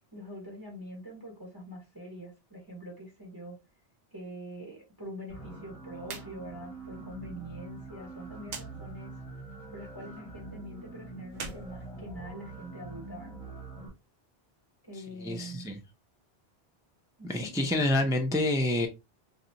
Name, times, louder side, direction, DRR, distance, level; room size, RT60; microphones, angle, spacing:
voice 1, 0.1-3.6 4.1-9.2 9.7-13.4 14.8-15.6 17.2-17.5, equal, 20° right, 1.2 m, -44 dB
sound 1, 5.3-13.9, right 3 dB, 25° left, 1.2 m, -45 dB
sound 2, 6.0-6.3 6.6-6.7 8.4-8.7 11.3-12.6, right 4 dB, 50° right, 0.6 m, -42 dB
voice 2, 15.2-15.8 17.2-18.9, left 1 dB, 5° right, 0.4 m, -27 dB
3.9 x 2.3 x 2.8 m
omnidirectional pair, 1.1 m